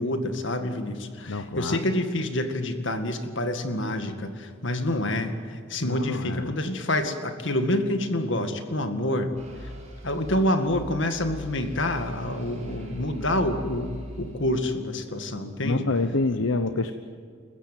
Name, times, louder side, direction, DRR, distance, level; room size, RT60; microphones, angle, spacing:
voice 1, 0.0-9.3 10.0-13.9 14.2-15.8, left 1 dB, 65° left, 7 dB, 2.1 m, -27 dB
voice 2, 1.3-1.8 5.8-6.5 15.6-16.9, left 3 dB, 80° left, 8 dB, 1.0 m, -27 dB
sound 1, 9.3-14.8, equal, 35° right, 6.6 m, -41 dB
29.0 x 15.0 x 9.1 m, 2.1 s
head